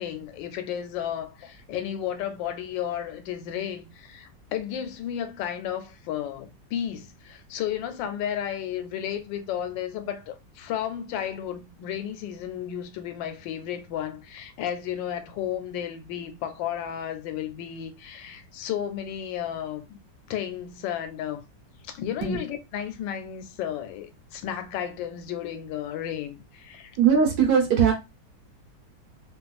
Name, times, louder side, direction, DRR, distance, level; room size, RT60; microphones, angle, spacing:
voice 1, 0.0-20.0 20.3-21.4 21.9-27.0, left 10 dB, 85° left, 1.3 m, -33 dB
voice 2, 27.0-27.9, right 7 dB, 60° right, 1.3 m, -20 dB
3.0 x 2.4 x 2.3 m
omnidirectional pair, 2.0 m